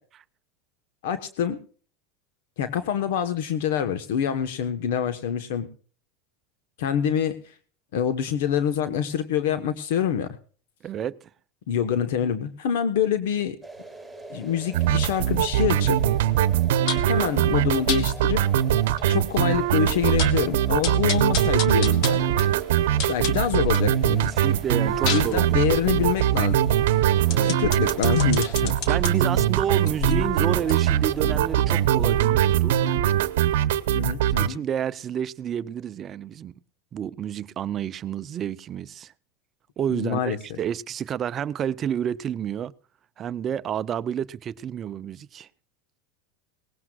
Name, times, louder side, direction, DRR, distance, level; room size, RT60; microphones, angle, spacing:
voice 1, 1.0-1.6 2.6-5.7 6.8-7.4 7.9-10.3 11.7-13.6 14.3-16.0 17.0-18.4 19.1-22.2 23.1-24.3 25.1-26.6 27.4-28.7 33.9-34.6 39.9-40.4, left 8 dB, 75° left, 1.2 m, -26 dB
voice 2, 10.8-11.3 24.2-25.6 27.3-27.5 28.9-32.9 34.4-36.5 36.9-39.1 39.8-42.7 43.2-45.5, right 9 dB, 30° right, 0.6 m, -30 dB
sound 1, 13.6-31.9, right 2 dB, 5° left, 5.7 m, -45 dB
sound 2, 14.7-34.5, right 11 dB, 80° right, 0.9 m, -22 dB
sound 3, 16.9-17.2 17.9-18.0 18.6-18.7 19.0-19.1 19.5-19.6 19.9-20.4 20.8-23.9 24.3-29.1 29.7-32.4 32.7-32.8, left 6 dB, 60° left, 1.8 m, -33 dB
19.0 x 16.0 x 2.4 m
supercardioid pair, 130°, 0 cm